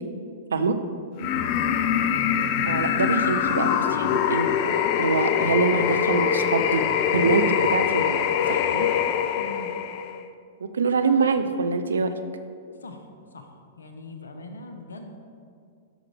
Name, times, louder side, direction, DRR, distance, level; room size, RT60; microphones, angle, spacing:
voice 1, 1.2-1.5 9.4-9.7 12.7-13.5 13.8-15.2, left 2 dB, 80° left, 5 dB, 0.9 m, -41 dB
sound 1, 1.2-10.2, left 9 dB, 45° left, 0.4 m, -23 dB
voice 2, 2.7-4.5 5.0-6.8 7.1-8.2 8.5-8.9 10.6-12.1, right 4 dB, 75° right, 9 dB, 0.6 m, -24 dB
11.0 x 6.5 x 3.5 m, 2.3 s
figure-of-eight pair, 105°, 0 cm